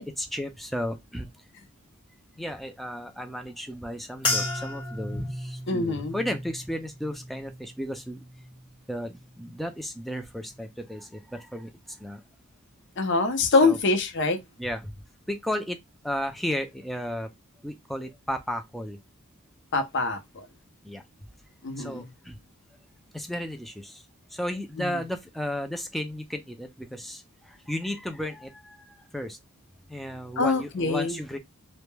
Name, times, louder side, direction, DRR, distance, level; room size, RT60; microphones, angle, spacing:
voice 1, 0.2-1.3 2.4-8.2 8.9-11.7 12.0-12.2 13.6-13.8 14.6-15.0 15.3-15.8 16.0-17.3 17.6-19.0 20.8-21.0 21.8-22.4 23.1-24.0 24.3-29.4 29.9-31.4, equal, ahead, 0.3 m, -34 dB
sound 1, 4.2-8.8 9.1-9.7 10.3-10.6, left 2 dB, 25° left, 0.7 m, -34 dB
voice 2, 5.7-6.2 13.0-14.4 19.7-20.4 21.6-22.0 24.8-24.9 30.4-31.2, left 3 dB, 55° left, 0.6 m, -24 dB
2.2 x 2.1 x 3.1 m
head